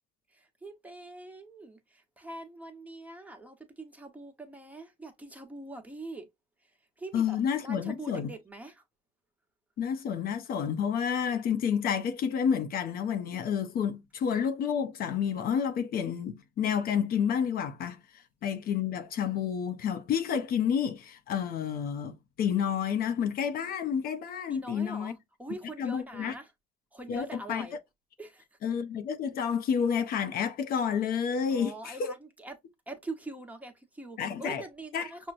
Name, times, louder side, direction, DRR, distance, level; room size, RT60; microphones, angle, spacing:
voice 1, 0.3-6.3 7.0-7.4 7.6-8.8 24.5-26.5 26.9-27.8 28.2-28.6 31.5-32.6 32.9-35.3, right 2 dB, 10° right, 1.0 m, -43 dB
voice 2, 7.1-8.3 9.8-18.0 18.4-25.1 25.8-26.3 27.1-27.6 28.6-32.1 34.2-34.6 34.9-35.3, left 7 dB, 60° left, 0.6 m, -30 dB
6.0 x 2.1 x 2.5 m
cardioid pair, 110°, 17 cm